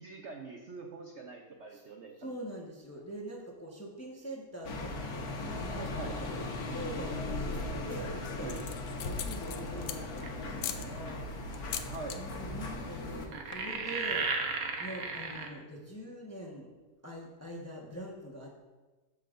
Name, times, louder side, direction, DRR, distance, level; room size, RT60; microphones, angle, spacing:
voice 1, 0.0-2.3 5.9-6.2 8.4-8.6 11.8-12.2, right 4 dB, 60° right, 1 dB, 0.7 m, -44 dB
voice 2, 2.2-8.6 9.0-11.4 12.2-16.7 17.0-18.7, right 1 dB, 10° left, -2 dB, 0.8 m, -44 dB
sound 1, 4.6-13.3, left 2 dB, 60° left, 1.4 m, -38 dB
sound 2, 7.7-8.0 8.4-10.2 10.6-10.9 11.5-12.2 12.5-12.8 13.0-13.1 13.4-13.8, left 9 dB, 85° left, 1.3 m, -39 dB
sound 3, 10.2-10.5 11.5-11.6 13.3-15.5, right 4 dB, 80° right, 1.5 m, -34 dB
13.0 x 5.8 x 2.5 m, 1.2 s
omnidirectional pair, 1.9 m